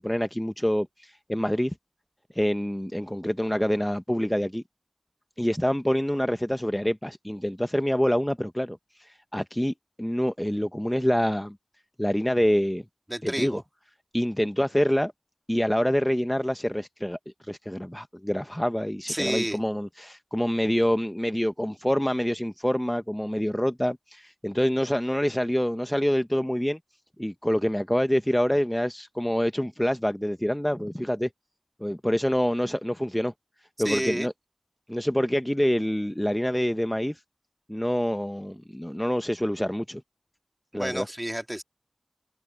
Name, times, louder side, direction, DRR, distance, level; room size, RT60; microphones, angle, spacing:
voice 1, 0.0-1.7 2.3-4.6 5.4-11.6 12.0-12.8 13.2-13.6 14.1-15.1 15.5-17.2 17.5-26.8 27.2-31.3 31.8-33.3 33.8-34.3 34.9-37.2 37.7-40.0 40.7-41.1, equal, 15° left, 0.6 m, -26 dB
voice 2, 13.1-13.6 19.1-19.6 33.8-34.3 40.7-41.6, right 1 dB, 20° right, 2.1 m, -30 dB
open air
wide cardioid pair, 45°, 0 cm